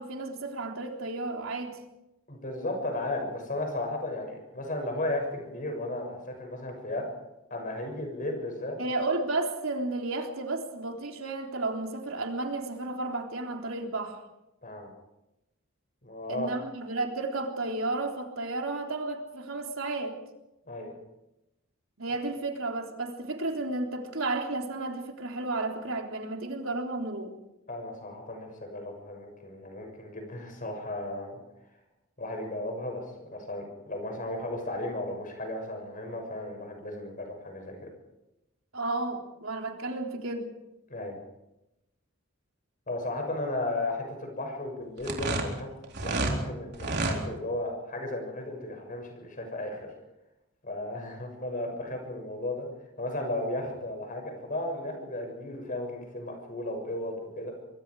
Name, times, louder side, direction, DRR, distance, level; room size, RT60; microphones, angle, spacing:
voice 1, 0.0-1.8 8.8-14.2 16.3-20.2 22.0-27.4 38.7-40.5, right 2 dB, 80° right, 2 dB, 3.7 m, -32 dB
voice 2, 2.3-7.1 7.5-8.8 14.6-14.9 16.0-16.5 20.7-20.9 27.7-31.4 32.2-37.9 40.9-41.2 42.9-45.7 46.0-49.9 50.6-52.7 53.0-57.5, left 1 dB, 40° left, 4 dB, 6.9 m, -35 dB
sound 1, 45.0-46.4 46.7-47.2, right 2 dB, 55° right, 3.9 m, -29 dB
24.5 x 24.0 x 4.9 m, 0.92 s
head